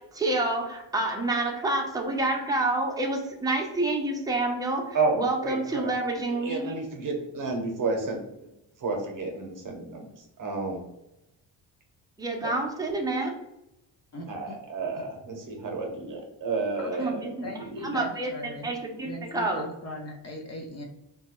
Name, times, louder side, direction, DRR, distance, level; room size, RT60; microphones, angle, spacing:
voice 1, 0.0-6.8 12.2-13.3 17.0-17.5 17.8-18.3 18.6-19.6, right 2 dB, 10° right, 1 dB, 0.6 m, -28 dB
voice 2, 4.9-6.0 6.3-8.5 8.8-10.8 12.4-12.5 14.3-17.9, right 3 dB, 40° right, 2 dB, 0.8 m, -31 dB
voice 3, 14.1-14.6 16.8-17.1 17.4-18.7 19.0-20.8, left 1 dB, 35° left, 1 dB, 0.6 m, -39 dB
2.9 x 2.2 x 3.0 m, 0.89 s
cardioid pair, 90°, 47 cm